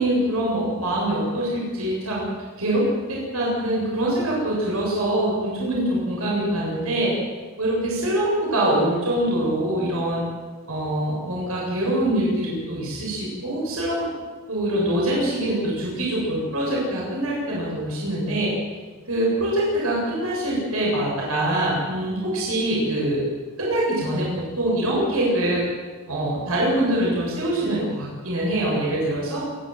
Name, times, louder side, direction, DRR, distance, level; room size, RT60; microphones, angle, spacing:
voice 1, 0.0-2.2 2.6-7.1 7.6-10.2 10.7-14.1 14.5-18.5 19.1-23.2 23.6-25.6 26.1-29.4, right 1 dB, 85° right, -4 dB, 7.6 m, -24 dB
27.5 x 12.5 x 9.1 m, 1.4 s
head